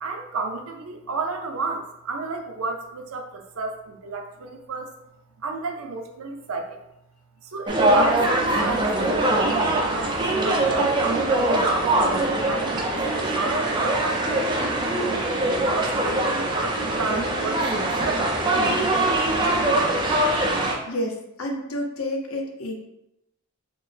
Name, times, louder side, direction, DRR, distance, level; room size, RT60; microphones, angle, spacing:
voice 1, 0.0-4.9 5.4-6.8 7.4-11.0 11.3-14.5 15.1-17.7 18.0-19.0 19.5-19.6, right 4 dB, 80° right, 5 dB, 0.5 m, -32 dB
sound 1, 7.7-20.7, right 1 dB, 20° right, 0.4 m, -22 dB
voice 2, 20.9-22.7, left 1 dB, 75° left, 1 dB, 0.7 m, -29 dB
4.3 x 2.1 x 3.3 m, 0.84 s
head